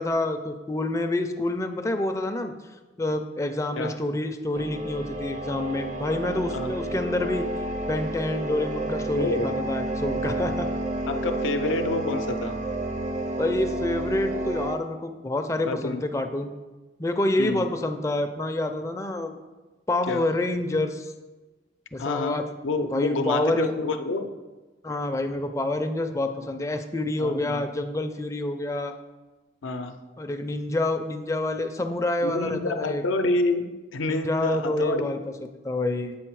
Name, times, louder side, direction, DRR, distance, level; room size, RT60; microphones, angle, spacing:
voice 1, 0.0-2.5 3.0-7.4 7.9-10.7 13.4-16.5 17.0-19.4 19.9-21.1 21.9-23.7 24.8-28.9 30.2-33.0 34.1-36.2, left 2 dB, 15° left, 6 dB, 0.4 m, -27 dB
sound 1, 4.5-14.8, right 1 dB, 40° right, 0.5 m, -30 dB
voice 2, 9.2-9.5 11.1-12.6 15.7-16.0 17.4-17.6 20.1-20.2 22.0-22.4 22.6-24.3 27.2-27.6 29.6-30.0 32.2-35.2, left 2 dB, 90° left, 7 dB, 0.6 m, -28 dB
7.7 x 3.9 x 4.7 m, 1.2 s
head